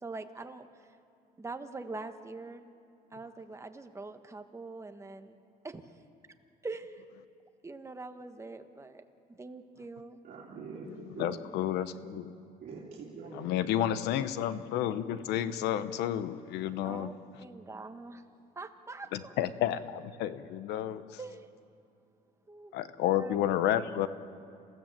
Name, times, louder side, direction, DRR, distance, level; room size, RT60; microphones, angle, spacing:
voice 1, 0.0-0.7 1.4-2.7 3.1-5.4 5.6-6.0 6.6-7.0 7.6-10.2 16.8-17.1 17.4-18.2 18.5-19.4 21.2-21.5 22.5-22.7 23.1-23.4, right 3 dB, 15° right, 7 dB, 1.3 m, -43 dB
voice 2, 10.2-11.3 12.6-13.5, right 5 dB, 55° right, -5 dB, 3.5 m, -44 dB
voice 3, 10.9-12.3 13.3-17.1 19.1-21.0 22.7-24.1, left 11 dB, 90° left, 13 dB, 1.0 m, -31 dB
27.5 x 15.5 x 7.6 m, 2.4 s
cardioid pair, 110°, 17 cm